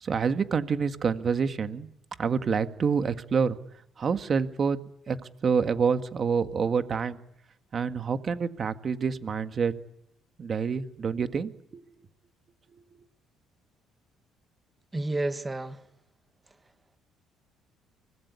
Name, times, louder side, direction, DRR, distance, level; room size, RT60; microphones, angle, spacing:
voice 1, 0.0-1.9 2.2-3.6 4.0-4.8 5.1-7.2 7.7-9.7 10.4-11.5, right 6 dB, 35° right, 1.7 m, -27 dB
voice 2, 14.9-15.8, right 2 dB, 15° right, 1.6 m, -30 dB
25.0 x 19.5 x 9.8 m
cardioid pair, 120°, 0 cm